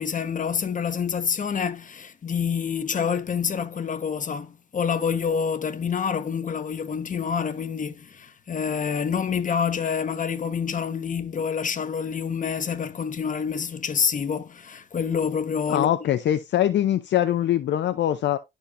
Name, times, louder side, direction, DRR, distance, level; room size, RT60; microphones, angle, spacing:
voice 1, 0.0-15.9, left 6 dB, 40° left, 1.2 m, -27 dB
voice 2, 15.7-18.4, left 11 dB, 65° left, 0.6 m, -23 dB
11.5 x 4.5 x 2.6 m
cardioid pair, 90°, 20 cm